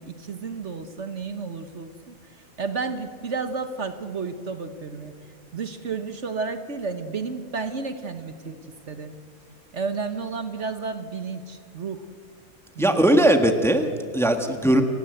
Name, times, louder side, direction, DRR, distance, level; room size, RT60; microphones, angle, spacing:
voice 1, 0.0-2.1 2.6-5.1 5.5-8.6 8.9-9.2 9.7-12.0 12.7-13.0, right 4 dB, 55° right, 9 dB, 1.5 m, -32 dB
voice 2, 12.8-14.8, right 1 dB, ahead, 6 dB, 1.4 m, -19 dB
29.5 x 18.0 x 7.9 m, 2.3 s
omnidirectional pair, 1.5 m